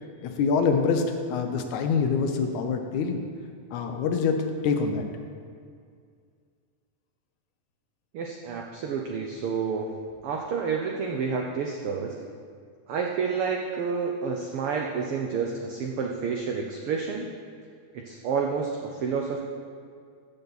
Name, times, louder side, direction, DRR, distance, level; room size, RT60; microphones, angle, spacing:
voice 1, 0.2-1.0 1.3-3.2 3.7-5.1, left 5 dB, 80° left, 5 dB, 2.2 m, -25 dB
voice 2, 8.1-9.9 10.2-12.1 12.9-17.3 17.9-19.4, right 5 dB, 80° right, 1 dB, 1.2 m, -29 dB
15.0 x 7.1 x 4.0 m, 2.2 s
omnidirectional pair, 3.4 m